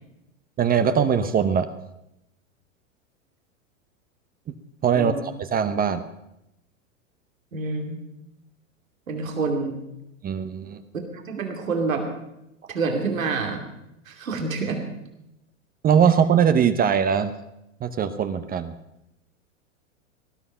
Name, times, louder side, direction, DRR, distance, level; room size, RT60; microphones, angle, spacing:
voice 1, 0.6-1.7 4.8-5.1 5.4-6.0 10.2-10.8 15.8-17.3 17.8-18.7, right 7 dB, 20° right, 10 dB, 0.8 m, -21 dB
voice 2, 4.9-5.2 7.5-8.0 9.1-9.7 10.9-12.0 12.7-13.6 14.1-14.8, right 4 dB, 85° right, 3 dB, 2.7 m, -27 dB
19.0 x 12.5 x 5.7 m, 0.86 s
hypercardioid pair, 105°, 40 cm